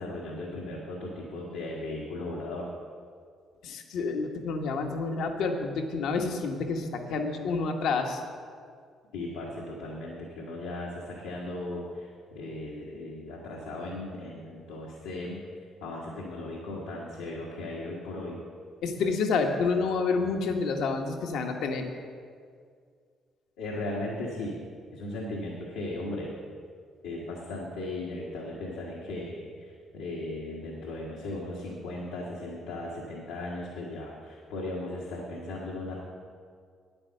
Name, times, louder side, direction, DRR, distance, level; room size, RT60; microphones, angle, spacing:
voice 1, 0.0-2.7 9.1-15.4 15.8-18.4 23.6-24.6 24.9-26.3 27.0-35.9, left 2 dB, 90° left, -4 dB, 1.5 m, -37 dB
voice 2, 3.6-8.2 18.8-21.9, left 4 dB, 70° left, 4 dB, 1.2 m, -29 dB
9.1 x 8.8 x 6.6 m, 2.1 s
supercardioid pair, 55°, 0 cm